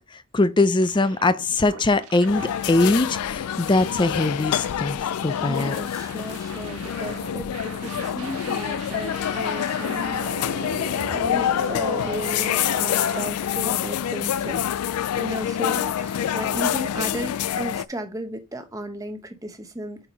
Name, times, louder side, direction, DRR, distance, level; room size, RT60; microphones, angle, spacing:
voice 1, 0.1-5.8, left 2 dB, 20° left, 0.4 m, -22 dB
sound 1, 0.8-13.3, right 3 dB, 90° right, 1.3 m, -39 dB
sound 2, 2.3-17.9, left 10 dB, 90° left, 0.3 m, -26 dB
voice 2, 5.4-10.6 11.1-20.1, right 1 dB, 15° right, 0.9 m, -35 dB
5.7 x 4.7 x 5.2 m
head